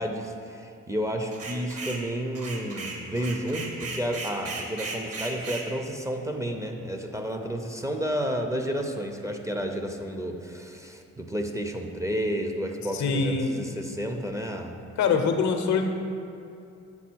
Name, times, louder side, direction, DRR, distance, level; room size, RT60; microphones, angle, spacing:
voice 1, 0.0-14.8, equal, 10° right, 4 dB, 0.5 m, -31 dB
sound 1, 1.3-2.0 2.4-5.7, right 3 dB, 50° right, 1.0 m, -36 dB
voice 2, 12.9-13.6 15.0-15.9, left 5 dB, 70° left, 6 dB, 0.7 m, -24 dB
7.3 x 3.7 x 4.5 m, 2.7 s
cardioid pair, 90°, 30 cm